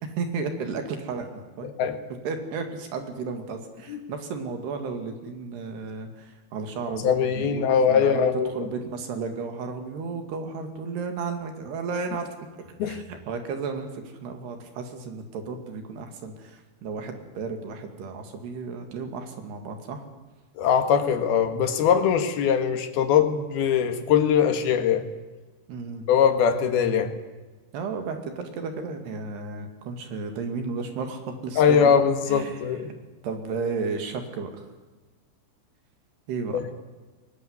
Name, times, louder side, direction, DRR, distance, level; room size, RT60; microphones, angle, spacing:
voice 1, 0.0-1.7 2.2-8.3 8.5-12.3 12.8-20.0 25.7-26.1 27.7-31.9 32.3-32.6 33.2-34.7 36.3-36.6, right 4 dB, 70° right, 6 dB, 4.4 m, -33 dB
voice 2, 1.6-2.0 3.9-4.0 7.0-8.7 12.8-13.0 20.6-25.1 26.1-27.1 31.6-32.9 36.5-36.6, left 7 dB, 65° left, 8 dB, 3.4 m, -21 dB
21.5 x 19.0 x 9.6 m, 1.3 s
omnidirectional pair, 4.9 m